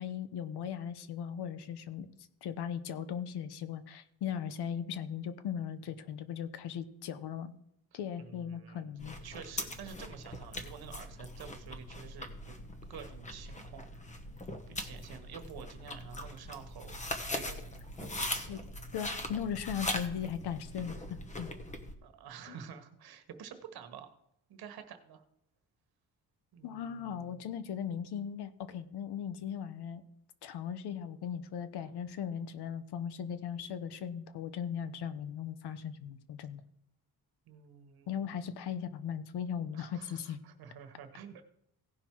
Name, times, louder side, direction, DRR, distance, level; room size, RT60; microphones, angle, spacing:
voice 1, 0.0-2.1 2.4-7.5 7.9-9.1 18.5-18.6 18.9-21.5 22.5-22.6 26.6-30.0 30.4-36.6 38.1-40.4, left 8 dB, 85° left, 13 dB, 1.0 m, -38 dB
voice 2, 7.9-8.9 9.2-12.6 12.9-13.8 14.7-17.0 17.3-18.6 22.0-24.1 24.5-25.2 26.5-27.6 37.5-38.5 39.7-41.4, right 7 dB, 70° right, 7 dB, 1.3 m, -49 dB
sound 1, 9.0-21.9, left 1 dB, 20° left, 1.0 m, -41 dB
16.5 x 5.8 x 4.6 m, 0.79 s
cardioid pair, 175°, 38 cm